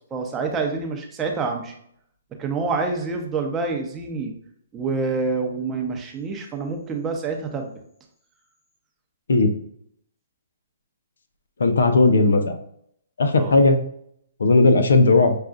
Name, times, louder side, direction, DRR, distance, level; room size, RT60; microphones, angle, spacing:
voice 1, 0.1-1.7 2.4-4.3 4.7-7.7 13.4-13.6, right 4 dB, 15° right, 2 dB, 0.7 m, -27 dB
voice 2, 11.6-12.6 13.2-13.8 14.4-15.4, left 3 dB, 80° left, 8 dB, 0.6 m, -16 dB
6.4 x 2.3 x 2.4 m, 0.68 s
hypercardioid pair, 140°, 0 cm